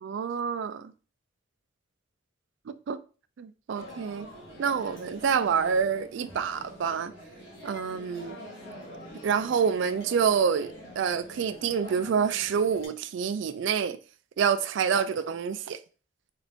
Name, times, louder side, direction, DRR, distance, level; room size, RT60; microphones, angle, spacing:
voice 1, 0.0-0.9 2.7-3.0 3.4-4.3 4.6-7.1 7.6-8.4 9.2-14.0 14.4-15.8, right 6 dB, 65° right, 0.3 m, -27 dB
sound 1, 3.7-12.9, equal, 70° left, 1.5 m, -45 dB
3.8 x 2.5 x 3.4 m
head